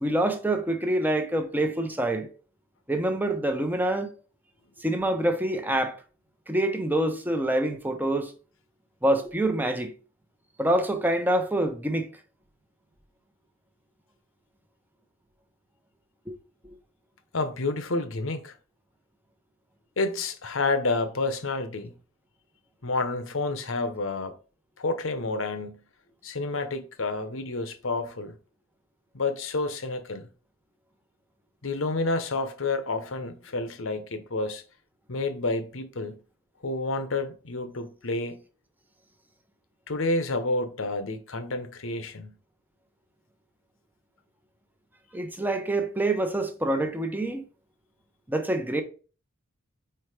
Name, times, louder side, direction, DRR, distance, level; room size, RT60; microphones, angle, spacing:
voice 1, 0.0-2.3 2.9-4.1 4.8-6.0 6.5-8.3 9.0-9.9 10.6-12.1 16.3-16.4 45.1-47.4 48.3-48.8, right 1 dB, 10° right, 0.8 m, -26 dB
voice 2, 17.3-18.6 20.0-21.9 22.8-24.3 24.8-25.8 26.2-28.4 29.1-30.3 31.6-34.6 35.1-36.2 36.6-38.4 39.9-42.3, left 3 dB, 75° left, 0.9 m, -29 dB
4.6 x 4.5 x 4.9 m
head